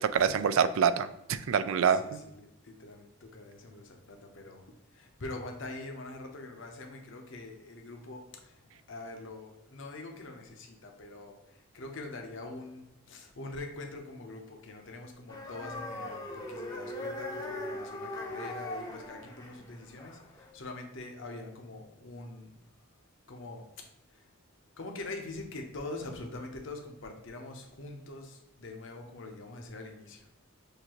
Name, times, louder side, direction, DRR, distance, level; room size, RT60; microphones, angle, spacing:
voice 1, 0.0-2.2, right 7 dB, 75° right, 13 dB, 0.3 m, -26 dB
voice 2, 2.0-4.6 4.9-8.5 8.9-22.5 23.3-23.6 24.1-24.3 24.8-30.2, left 2 dB, 60° left, 3 dB, 0.8 m, -44 dB
sound 1, 15.3-20.5, left 1 dB, 20° left, 0.6 m, -40 dB
6.5 x 2.6 x 3.0 m, 0.88 s
head